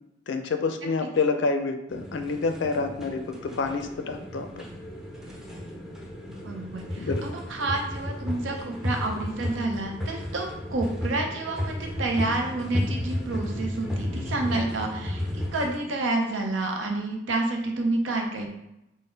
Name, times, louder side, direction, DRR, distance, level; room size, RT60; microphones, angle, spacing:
voice 1, 0.3-4.6 7.0-7.2, left 4 dB, 65° left, 7 dB, 0.4 m, -28 dB
sound 1, 1.9-15.8, left 1 dB, 5° right, 0.5 m, -33 dB
voice 2, 6.4-18.6, right 2 dB, 80° right, 2 dB, 0.6 m, -29 dB
3.9 x 2.0 x 3.8 m, 0.89 s
head